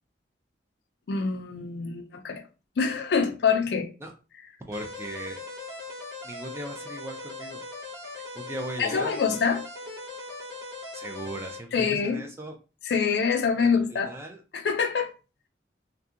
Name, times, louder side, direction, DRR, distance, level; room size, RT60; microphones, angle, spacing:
voice 1, 1.1-2.4 2.8-3.9 8.8-9.6 11.7-12.2 12.9-14.1 14.5-15.1, left 5 dB, 65° left, 0.4 m, -25 dB
voice 2, 4.7-5.4 6.2-7.6 8.3-9.4 10.9-12.5 13.6-14.4, right 1 dB, 15° right, 0.3 m, -38 dB
sound 1, 4.7-11.6, left 2 dB, 65° right, 1.0 m, -40 dB
2.7 x 2.2 x 2.4 m
head